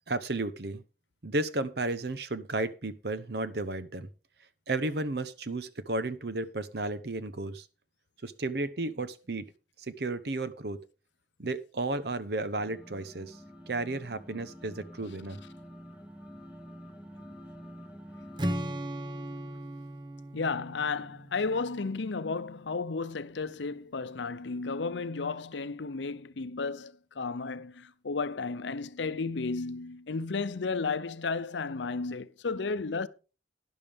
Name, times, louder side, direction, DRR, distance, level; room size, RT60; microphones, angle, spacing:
voice 1, 0.1-0.8 1.2-4.1 4.7-7.7 8.2-9.4 9.9-10.8 11.4-13.4 13.7-15.4, right 2 dB, 60° right, 0.9 m, -33 dB
sound 1, 12.6-18.4, equal, 5° right, 1.5 m, -48 dB
Strum, 18.4-22.5, right 1 dB, 25° right, 0.8 m, -37 dB
voice 2, 20.3-33.1, left 4 dB, 80° left, 0.7 m, -33 dB
12.0 x 10.5 x 3.5 m
head